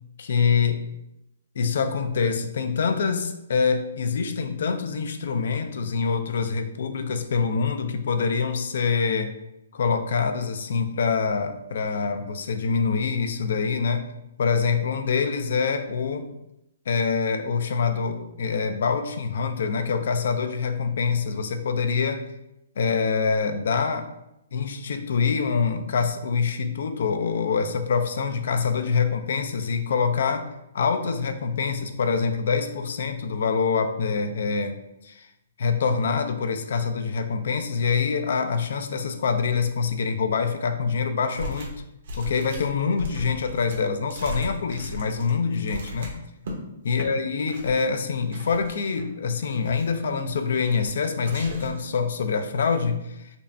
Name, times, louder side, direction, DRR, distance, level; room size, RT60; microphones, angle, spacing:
voice 1, 0.2-0.8 1.6-9.3 9.7-14.1 14.4-16.3 16.9-22.2 22.8-24.1 24.5-30.5 30.7-34.8 35.0-35.3 35.6-41.7 42.1-46.1 46.8-53.3, left 5 dB, 65° left, 8 dB, 0.4 m, -25 dB
Magazine Rustle and Book Closing, 41.3-41.8 42.0-46.6 46.9-47.1 47.5-47.8 48.3-49.0 49.4-50.0 50.5-50.9 51.2-51.9, equal, 65° right, 0.9 m, -37 dB
5.2 x 2.1 x 2.6 m, 0.86 s
hypercardioid pair, 150°, 0 cm